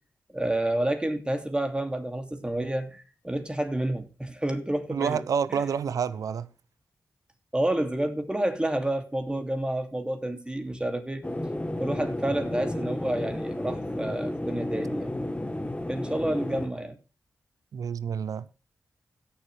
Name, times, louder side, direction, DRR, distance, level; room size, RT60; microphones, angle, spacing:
voice 1, 0.3-5.2 5.5-5.6 7.5-11.2 11.8-15.1 15.9-17.0, right 1 dB, 15° right, 2.6 m, -29 dB
voice 2, 4.9-6.5 17.7-18.5, right 7 dB, 85° right, 0.7 m, -28 dB
sound 1, 11.2-16.7, left 1 dB, 20° left, 1.8 m, -32 dB
17.0 x 7.1 x 3.4 m
cardioid pair, 50°, 6 cm